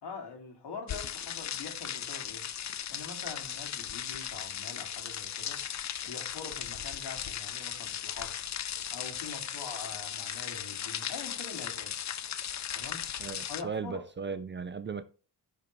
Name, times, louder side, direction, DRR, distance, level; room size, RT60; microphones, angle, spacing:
voice 1, 0.0-2.5 2.9-5.6 6.0-8.3 8.9-12.0 12.7-13.1 13.5-14.0, left 4 dB, 70° left, 2.4 m, -44 dB
sound 1, 0.9-13.6, left 9 dB, 45° left, 0.5 m, -37 dB
voice 2, 13.2-15.0, right 5 dB, 30° right, 0.4 m, -37 dB
14.5 x 5.1 x 3.1 m
wide cardioid pair, 135°, 41 cm